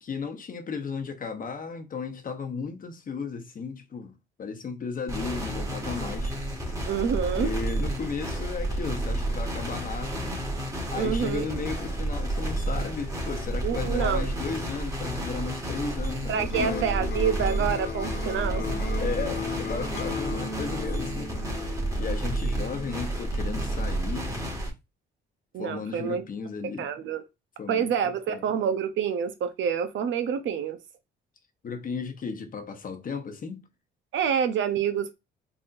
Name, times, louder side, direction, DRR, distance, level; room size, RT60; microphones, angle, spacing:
voice 1, 0.0-6.8 7.1-10.4 10.9-16.9 19.0-21.3 22.0-24.3 25.6-26.9 27.6-27.9 28.3-28.4 31.6-33.6, left 5 dB, 45° left, 0.9 m, -35 dB
sound 1, 5.1-24.7, right 1 dB, 15° right, 1.7 m, -31 dB
voice 2, 6.9-7.5 11.0-11.6 13.6-14.3 16.3-18.6 25.5-26.2 26.8-27.2 27.7-30.8 34.1-35.2, right 7 dB, 70° right, 0.7 m, -27 dB
sound 2, 15.9-21.1, left 7 dB, 80° left, 0.9 m, -45 dB
Electric guitar, 16.5-24.5, left 4 dB, 60° left, 1.2 m, -37 dB
4.0 x 3.4 x 2.5 m
cardioid pair, 90°, 20 cm